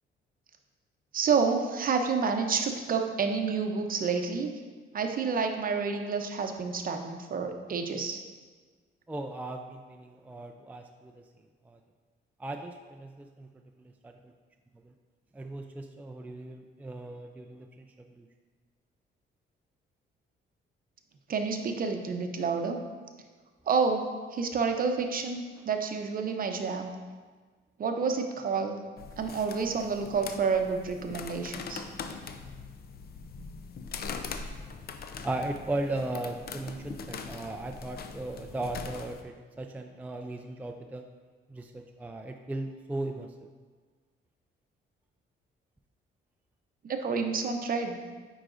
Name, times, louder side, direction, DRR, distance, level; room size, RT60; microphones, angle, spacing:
voice 1, 1.1-4.5 4.9-8.2 21.3-22.8 23.7-24.0 24.3-26.9 27.8-28.8 29.2-31.8 46.9-47.9, right 5 dB, 45° right, 5 dB, 0.7 m, -29 dB
voice 2, 9.1-11.2 11.6-11.8 12.4-13.5 13.8-14.3 14.8-14.9 15.3-18.3 35.2-41.0 41.5-43.5, right 2 dB, 10° right, 4 dB, 0.3 m, -37 dB
sound 1, 29.0-39.2, left 5 dB, 50° left, 0.5 m, -42 dB
8.8 x 4.8 x 2.5 m, 1.5 s
cardioid pair, 90°, 20 cm